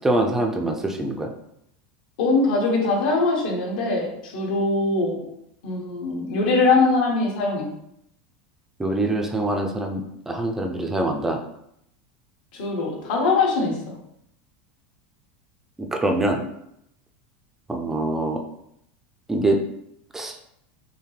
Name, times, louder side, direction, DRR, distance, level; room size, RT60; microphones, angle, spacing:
voice 1, 0.0-1.3 8.8-11.4 16.0-16.4 17.7-18.4 19.3-19.6 20.1-20.3, right 2 dB, 5° right, 3 dB, 0.4 m, -24 dB
voice 2, 2.2-5.2 5.6-7.7 12.5-14.0, left 3 dB, 70° left, -2 dB, 1.5 m, -22 dB
5.5 x 2.1 x 3.2 m, 0.76 s
supercardioid pair, 165°, 5 cm